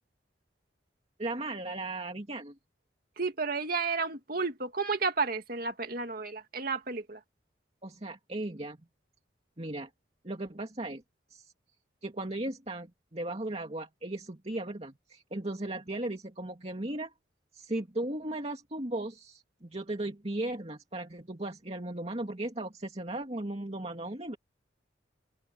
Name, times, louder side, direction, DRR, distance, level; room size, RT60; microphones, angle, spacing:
voice 1, 1.2-2.5 7.8-8.8 9.6-9.9 10.2-11.0 11.3-11.5 12.0-17.1 17.5-24.4, right 1 dB, 35° right, 2.3 m, -36 dB
voice 2, 3.2-7.2, right 4 dB, 55° right, 2.3 m, -32 dB
open air
head